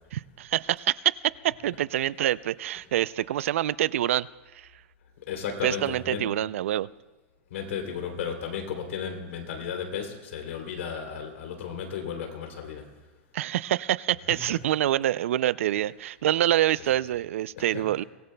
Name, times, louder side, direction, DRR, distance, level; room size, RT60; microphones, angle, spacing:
voice 1, 0.1-4.8 5.6-6.9 13.3-18.0, right 13 dB, 85° right, 20 dB, 0.4 m, -26 dB
voice 2, 5.2-6.3 7.5-12.9 17.6-17.8, left 7 dB, 80° left, 3 dB, 3.0 m, -34 dB
24.0 x 18.0 x 2.2 m, 1.2 s
supercardioid pair, 170°, 7 cm